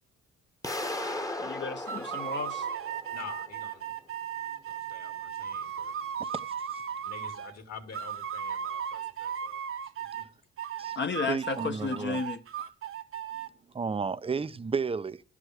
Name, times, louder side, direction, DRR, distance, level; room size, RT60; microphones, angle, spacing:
sound 1, 0.6-3.5, left 1 dB, 10° left, 1.1 m, -36 dB
voice 1, 1.4-2.7 11.0-12.4, left 4 dB, 35° left, 1.0 m, -33 dB
sound 2, 1.9-7.5 7.9-10.3 10.6-13.5, right 8 dB, 45° right, 0.9 m, -36 dB
voice 2, 3.1-3.9 4.7-6.0 7.0-10.3 11.0-11.1, left 6 dB, 60° left, 2.8 m, -47 dB
voice 3, 6.2-6.8 10.8-11.0 11.3-12.2 13.7-15.2, right 5 dB, 20° right, 0.6 m, -33 dB
12.0 x 4.9 x 7.9 m
cardioid pair, 90°, 30 cm